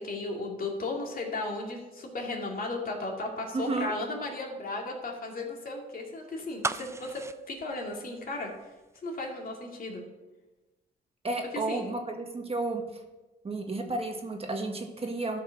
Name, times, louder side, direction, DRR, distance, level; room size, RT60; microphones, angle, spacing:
voice 1, 0.0-8.5 9.0-10.0 11.5-11.9, left 2 dB, 45° left, 0 dB, 2.7 m, -35 dB
voice 2, 3.5-3.9 11.2-13.0 13.4-15.4, right 2 dB, 30° right, 3 dB, 1.5 m, -32 dB
sound 1, 6.6-8.7 9.0-9.1, right 3 dB, 15° right, 0.4 m, -35 dB
12.5 x 5.6 x 5.9 m, 1.1 s
cardioid pair, 90°, 20 cm